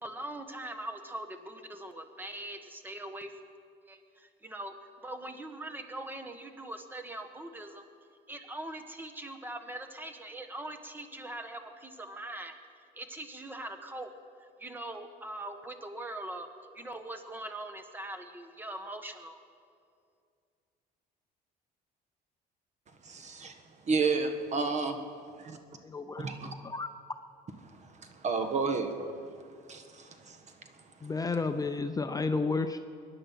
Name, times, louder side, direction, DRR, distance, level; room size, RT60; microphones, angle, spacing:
voice 1, 0.0-3.3 3.9-4.7 5.0-7.9 8.3-12.6 12.9-14.1 14.6-16.5 16.7-19.4, right 1 dB, 10° right, 7 dB, 1.4 m, -41 dB
voice 2, 23.0-23.5 23.9-25.0 25.4-25.6 26.2-26.5 28.2-29.2 29.7-30.4, right 4 dB, 45° right, 7 dB, 1.5 m, -31 dB
voice 3, 25.8-26.9 31.0-32.8, left 3 dB, 20° left, 8 dB, 0.6 m, -32 dB
22.5 x 10.0 x 5.8 m, 2.3 s
cardioid pair, 110°, 17 cm